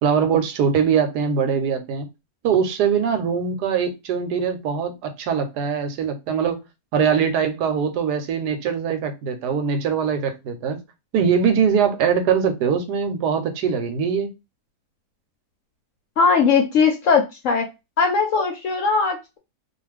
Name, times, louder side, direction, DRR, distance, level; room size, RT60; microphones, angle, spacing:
voice 1, 0.0-2.1 2.4-6.6 6.9-10.8 11.1-14.3, right 7 dB, 80° right, 1.2 m, -22 dB
voice 2, 16.2-17.7 18.0-19.4, left 5 dB, 70° left, 0.8 m, -19 dB
2.5 x 2.4 x 3.2 m
omnidirectional pair, 1.8 m